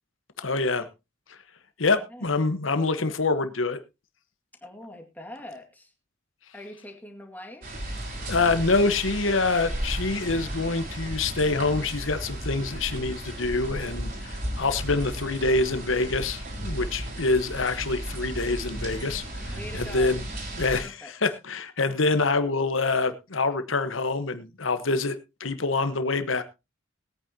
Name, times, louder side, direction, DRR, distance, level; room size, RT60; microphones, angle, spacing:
voice 1, 0.4-0.9 1.3-1.4 1.8-3.8 8.3-20.2 20.6-25.1 25.4-26.4, left 3 dB, 80° left, 11 dB, 1.3 m, -26 dB
voice 2, 1.8-2.2 4.6-5.9 6.5-7.7 19.5-20.2 20.8-21.1, left 1 dB, 10° left, 3 dB, 2.1 m, -43 dB
sound 1, 7.6-20.8, right 1 dB, 50° right, 4.0 m, -34 dB
20.5 x 9.0 x 2.9 m, 0.26 s
head